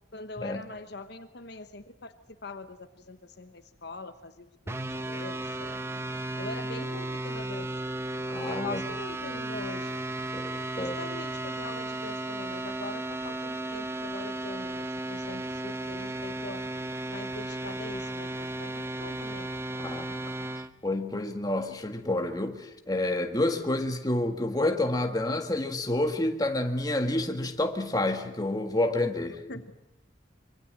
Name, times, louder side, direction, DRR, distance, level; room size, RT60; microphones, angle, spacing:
voice 1, 0.1-2.1 2.4-5.8 6.4-7.7 8.4-10.0 10.7-16.6 17.1-19.5 29.5-29.7, left 3 dB, 55° left, 10 dB, 1.2 m, -43 dB
sound 1, 4.7-20.7, right 1 dB, 15° right, 0.8 m, -34 dB
voice 2, 8.3-8.8 10.3-11.0 19.8-20.1 20.8-29.4, left 1 dB, 20° left, 5 dB, 1.7 m, -29 dB
25.0 x 23.5 x 7.6 m, 0.91 s
head